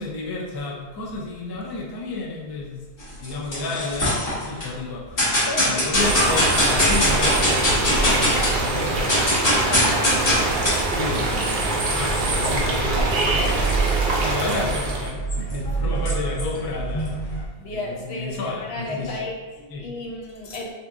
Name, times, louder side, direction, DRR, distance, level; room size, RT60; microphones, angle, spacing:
voice 1, 0.0-2.8 3.2-5.3 5.6-9.1 9.4-13.6 14.2-19.2 19.7-19.9, left 3 dB, 40° left, -2 dB, 0.3 m, -31 dB
sound 1, 3.0-4.7 5.2-8.6 8.9-17.4, equal, 55° left, 1.2 m, -24 dB
sound 2, 6.0-15.1, right 2 dB, 55° right, 0.7 m, -24 dB
voice 2, 13.4-13.7 17.6-20.7, left 2 dB, 75° left, -1 dB, 0.9 m, -33 dB
2.8 x 2.4 x 3.5 m, 1.3 s
omnidirectional pair, 1.1 m